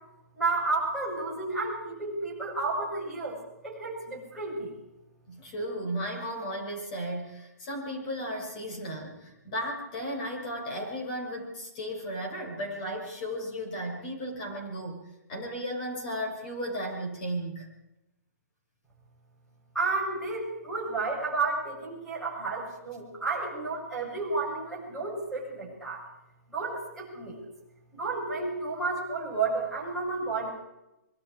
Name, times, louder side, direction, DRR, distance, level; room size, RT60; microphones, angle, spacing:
voice 1, 0.4-3.4 3.6-4.7 19.7-26.0 26.5-27.3 28.0-30.5, right 3 dB, ahead, -5 dB, 8.0 m, -31 dB
voice 2, 5.3-15.0 15.3-17.7, equal, 25° left, 2 dB, 6.5 m, -35 dB
26.0 x 24.0 x 4.9 m, 0.93 s
hypercardioid pair, 170°, 9 cm